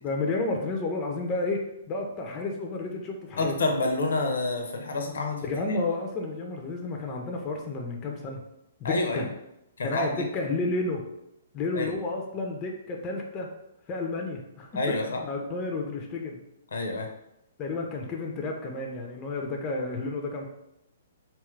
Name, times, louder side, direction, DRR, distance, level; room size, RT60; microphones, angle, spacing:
voice 1, 0.0-1.6 1.9-3.6 5.4-8.4 8.8-9.3 9.8-11.0 11.5-13.5 13.9-14.7 15.2-16.4 17.6-20.5, left 3 dB, 25° left, 1 dB, 0.5 m, -31 dB
voice 2, 3.4-5.4 5.7-5.8 8.8-9.3 9.8-10.2 11.7-11.9 14.7-15.2 16.7-17.1, left 2 dB, 70° left, 3 dB, 0.6 m, -28 dB
2.8 x 2.4 x 3.1 m, 0.85 s
hypercardioid pair, 125°, 0 cm